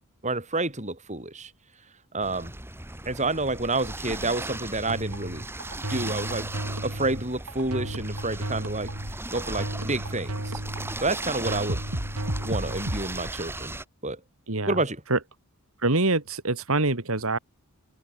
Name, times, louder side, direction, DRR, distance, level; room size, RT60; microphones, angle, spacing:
voice 1, 0.2-1.5 2.1-2.5 3.1-5.5 5.9-6.5 6.8-8.9 9.3-10.5 11.0-11.8 12.4-13.8 14.0-14.2 14.7-15.0, right 2 dB, 30° right, 7.4 m, -29 dB
sound 1, 2.2-13.8, right 2 dB, 10° right, 3.4 m, -37 dB
sound 2, 4.8-13.0, right 1 dB, 85° right, 5.0 m, -33 dB
voice 2, 14.5-14.8 15.1-15.2 15.8-17.4, right 2 dB, 65° right, 2.3 m, -25 dB
head